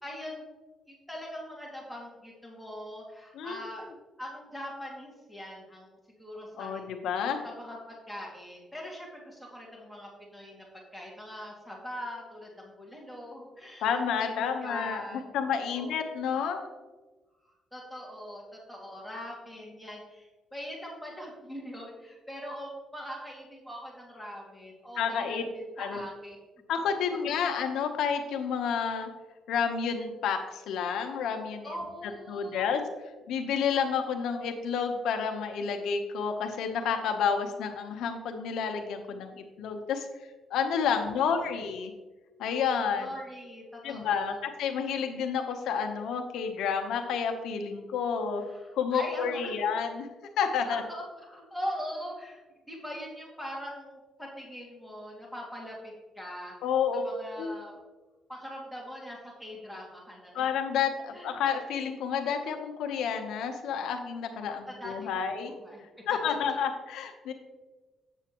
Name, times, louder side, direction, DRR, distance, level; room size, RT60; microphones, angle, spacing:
voice 1, 0.0-0.4 0.9-3.9 4.2-6.9 7.4-10.7 10.9-16.3 17.4-26.4 31.6-32.8 40.9-41.5 43.0-44.4 48.4-49.5 50.6-52.4 52.7-56.5 56.9-57.8 58.3-60.5 61.1-61.3 64.7-65.8 66.3-66.6, equal, 5° left, -3 dB, 2.2 m, -42 dB
voice 2, 6.6-7.4 13.8-16.6 25.0-25.4 25.8-26.0 26.7-29.1 29.5-31.7 32.3-32.8 33.3-40.1 40.5-41.9 42.4-43.1 43.8-48.4 48.8-50.1 50.4-50.8 56.6-57.0 57.4-57.5 60.3-65.5 66.1-67.3, left 6 dB, 85° left, 6 dB, 0.9 m, -30 dB
8.1 x 7.0 x 3.0 m, 1.2 s
cardioid pair, 90°, 0 cm